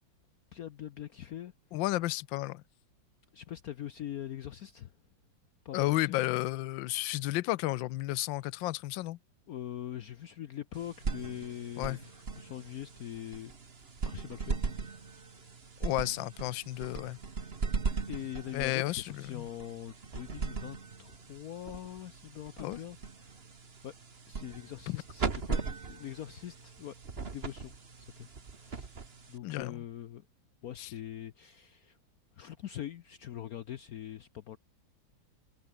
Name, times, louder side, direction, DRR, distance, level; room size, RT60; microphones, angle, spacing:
voice 1, 0.5-1.5 3.3-4.9 5.6-6.2 9.5-13.5 14.0-15.2 18.1-23.4 23.8-23.9 24.3-27.7 28.0-28.3 28.5-28.9 29.3-30.3 30.6-32.0 32.4-34.6, left 11 dB, 65° left, 1.0 m, -43 dB
voice 2, 1.7-2.6 5.7-9.2 11.8-12.0 15.8-17.2 18.5-19.5 22.6-22.8 24.9-25.0 29.4-29.8 30.8-30.9, left 17 dB, 80° left, 1.3 m, -32 dB
sound 1, 10.7-29.6, right 4 dB, 30° right, 1.8 m, -39 dB
omnidirectional pair, 2.1 m